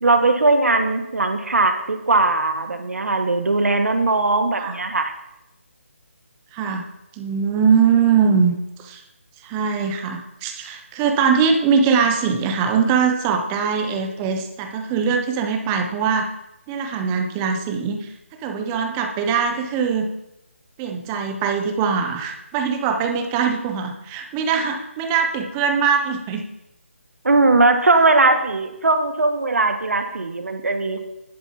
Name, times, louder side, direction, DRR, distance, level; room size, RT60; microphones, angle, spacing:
voice 1, 0.0-5.1 27.2-31.0, right 3 dB, 85° right, 7 dB, 1.3 m, -19 dB
voice 2, 6.5-6.9 7.1-9.0 9.4-16.3 16.7-18.1 18.4-20.1 20.8-26.4, right 6 dB, 10° right, 5 dB, 0.4 m, -21 dB
10.5 x 7.1 x 4.2 m, 0.88 s
hypercardioid pair, 170°, 8 cm